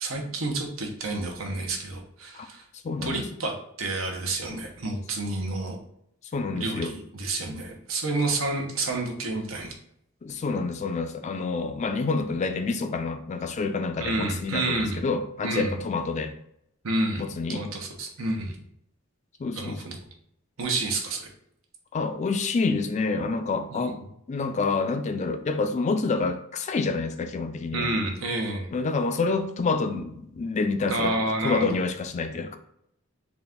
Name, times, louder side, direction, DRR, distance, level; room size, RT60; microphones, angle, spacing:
voice 1, 0.0-2.6 3.0-5.8 6.6-9.7 14.0-15.0 15.4-15.7 16.8-17.2 17.5-18.6 19.5-20.0 20.6-21.3 23.7-23.8 27.7-28.7 30.9-31.8, right 2 dB, 80° right, 2 dB, 0.9 m, -29 dB
voice 2, 2.8-3.2 6.3-6.9 10.2-16.3 17.2-17.7 19.4-19.8 21.9-24.0 24.3-27.9 28.7-31.1 31.4-32.6, left 4 dB, 35° left, 8 dB, 0.3 m, -28 dB
4.1 x 2.4 x 3.5 m, 0.73 s
head